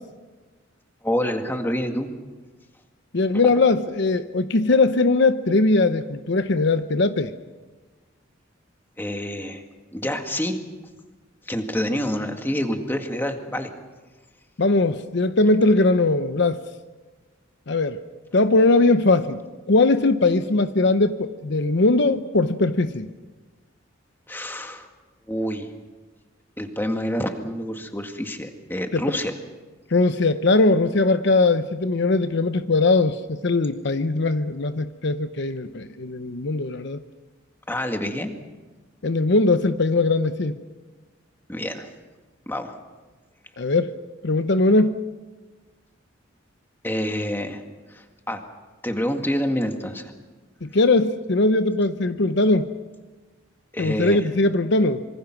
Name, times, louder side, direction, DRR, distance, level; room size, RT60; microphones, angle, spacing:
voice 1, 1.0-2.1 9.0-9.6 9.9-10.6 11.5-13.7 24.3-24.9 25.3-25.7 26.6-29.3 37.7-38.3 41.5-41.9 42.5-42.8 46.8-47.6 47.9-48.4 48.8-50.1 53.7-54.2, equal, 10° left, 4 dB, 1.9 m, -27 dB
voice 2, 3.1-7.3 14.6-16.6 17.7-18.0 18.3-19.4 19.7-23.1 28.9-29.0 29.9-37.0 39.0-40.6 43.6-43.9 44.2-45.0 50.6-52.7 53.8-55.0, left 2 dB, 60° left, 10 dB, 0.8 m, -20 dB
26.0 x 24.0 x 6.1 m, 1.3 s
head